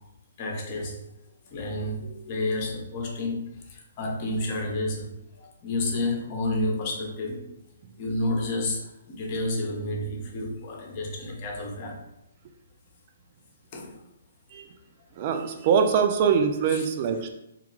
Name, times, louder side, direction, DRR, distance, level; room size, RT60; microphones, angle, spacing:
voice 1, 0.4-1.0 1.5-3.4 3.7-5.1 5.4-7.5 8.0-12.0 13.7-13.9 16.7-16.8, left 1 dB, 35° left, 0 dB, 0.7 m, -30 dB
voice 2, 15.2-17.3, right 6 dB, 40° right, 6 dB, 0.3 m, -23 dB
2.3 x 2.2 x 3.1 m, 0.84 s
figure-of-eight pair, 130°, 0 cm